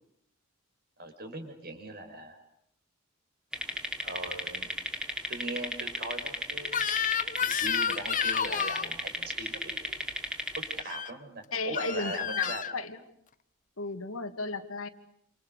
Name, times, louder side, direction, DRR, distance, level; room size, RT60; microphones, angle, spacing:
voice 1, 1.0-2.4 4.0-4.7 5.3-6.8 7.4-10.1 10.6-12.6, right 2 dB, 50° right, 7 dB, 5.6 m, -40 dB
sound 1, 3.5-10.8, equal, 5° right, 3.6 m, -35 dB
Crying sobbing / Screech, 6.7-8.9 10.8-11.1 11.8-12.7, left 8 dB, 40° left, 1.0 m, -30 dB
voice 2, 11.5-13.0 13.8-14.9, left 3 dB, 90° left, 7 dB, 2.6 m, -35 dB
28.5 x 28.0 x 6.6 m, 0.75 s
head